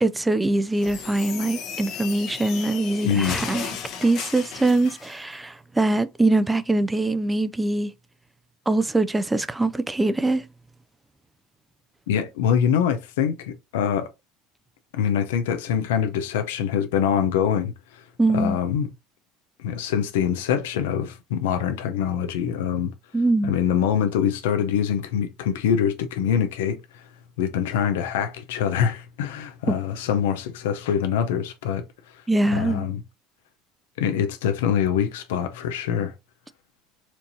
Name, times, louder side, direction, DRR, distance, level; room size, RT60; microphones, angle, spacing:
voice 1, 0.0-3.7 4.0-7.9 8.7-10.5 18.2-18.6 23.1-23.5 32.3-32.9, right 2 dB, 10° right, 0.3 m, -23 dB
sound 1, 0.7-5.2, left 6 dB, 60° left, 1.0 m, -35 dB
voice 2, 3.0-3.4 12.1-14.1 14.9-18.0 18.3-18.9 19.6-22.9 23.4-26.8 27.4-31.9 32.5-33.0 34.0-36.1, left 8 dB, 90° left, 0.6 m, -24 dB
4.4 x 2.7 x 2.6 m
supercardioid pair, 105°, 0 cm